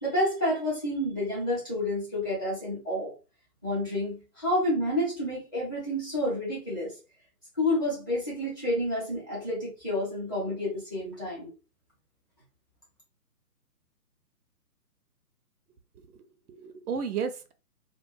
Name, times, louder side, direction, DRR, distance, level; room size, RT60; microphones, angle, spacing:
voice 1, 0.0-3.1 3.6-7.0 7.6-11.5, left 1 dB, 15° left, -8 dB, 0.5 m, -29 dB
voice 2, 16.0-17.5, right 6 dB, 75° right, 9 dB, 0.6 m, -34 dB
2.3 x 2.2 x 2.6 m, 0.31 s
figure-of-eight pair, 145°, 46 cm